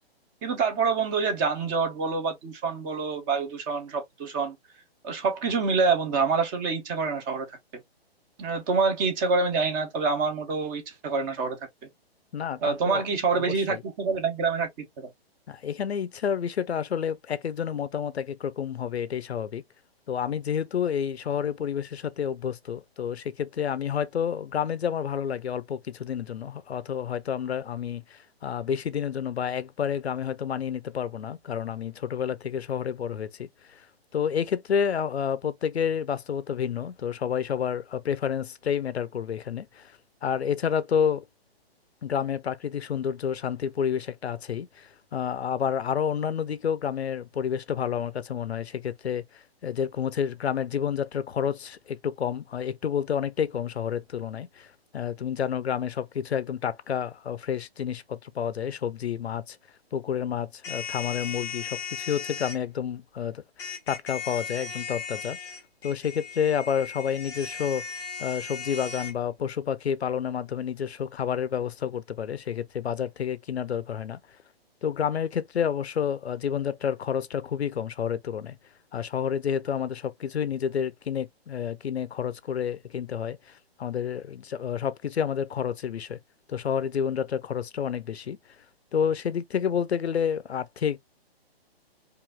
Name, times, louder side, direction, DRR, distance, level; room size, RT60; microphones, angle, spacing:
voice 1, 0.4-4.6 5.0-7.6 8.4-11.6 12.6-15.1, right 4 dB, 20° right, 0.8 m, -26 dB
voice 2, 12.3-13.1 13.3-13.8 15.5-19.6 20.1-33.9 34.1-39.9 40.2-41.2 42.0-59.6 59.9-65.4 65.8-67.9 68.2-74.2 74.8-78.6 78.9-86.2 86.5-88.4 88.9-91.0, left 8 dB, 90° left, 0.7 m, -29 dB
sound 1, 60.6-62.6 63.6-69.1, left 6 dB, 10° left, 0.6 m, -37 dB
4.9 x 2.6 x 2.3 m
hypercardioid pair, 150°, 31 cm